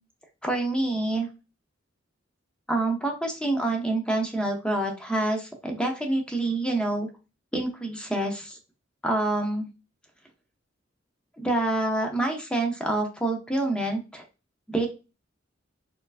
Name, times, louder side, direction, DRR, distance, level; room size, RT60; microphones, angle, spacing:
voice 1, 0.4-1.3 2.7-7.1 7.5-8.6 9.0-9.7 11.4-14.2 14.7-14.9, right 2 dB, 5° left, 2 dB, 0.5 m, -27 dB
4.2 x 2.5 x 2.4 m, 0.31 s
head